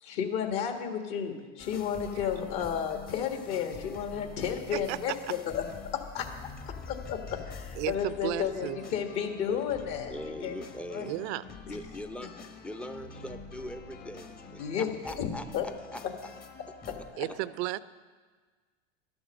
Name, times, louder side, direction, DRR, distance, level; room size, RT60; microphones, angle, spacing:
voice 1, 0.0-5.6 6.1-6.3 6.9-10.5 10.9-11.1 11.7-11.8 14.6-14.9 15.2-15.3 15.5-15.7 16.8-17.2, left 8 dB, 55° left, 5 dB, 1.7 m, -32 dB
sound 1, 1.6-17.1, left 5 dB, 25° left, 0.9 m, -46 dB
sound 2, 7.8-14.6, left 3 dB, 80° left, 1.5 m, -53 dB
voice 2, 7.8-8.8 11.0-11.4 17.2-17.8, right 17 dB, 55° right, 17 dB, 0.5 m, -33 dB
voice 3, 10.1-11.2 11.6-12.3 12.6-15.4 15.9-16.0, left 1 dB, 5° left, 8 dB, 0.5 m, -41 dB
12.0 x 7.1 x 6.4 m, 1.5 s
hypercardioid pair, 95°, 39 cm